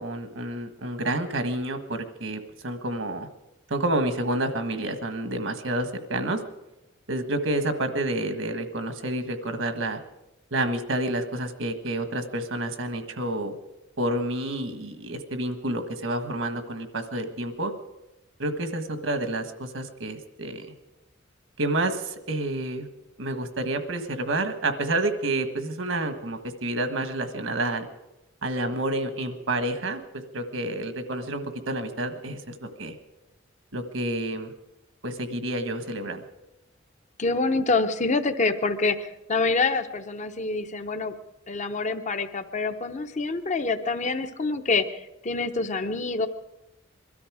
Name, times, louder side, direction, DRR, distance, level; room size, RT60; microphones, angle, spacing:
voice 1, 0.0-3.3 3.7-6.4 7.1-10.0 10.5-13.5 14.0-17.7 18.4-20.7 21.6-22.9 23.2-27.9 28.4-33.0 33.7-34.5 35.0-36.2, right 1 dB, 80° right, 8 dB, 1.5 m, -29 dB
voice 2, 37.2-41.1 41.5-46.3, left 3 dB, 40° left, 8 dB, 0.8 m, -26 dB
22.0 x 13.0 x 4.9 m, 0.95 s
head